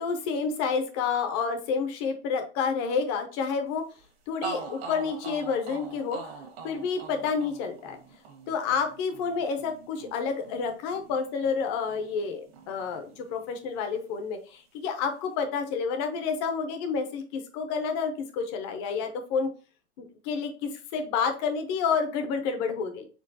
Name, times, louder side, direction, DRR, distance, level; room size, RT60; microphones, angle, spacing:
voice 1, 0.0-3.8 4.3-6.3 6.6-8.0 8.5-19.5 20.0-23.1, left 5 dB, 25° left, 7 dB, 0.5 m, -29 dB
sound 1, 4.0-4.1 4.4-12.3 12.5-13.7, right 5 dB, 60° right, 1.4 m, -43 dB
4.4 x 3.8 x 2.7 m, 0.36 s
supercardioid pair, 160°, 35 cm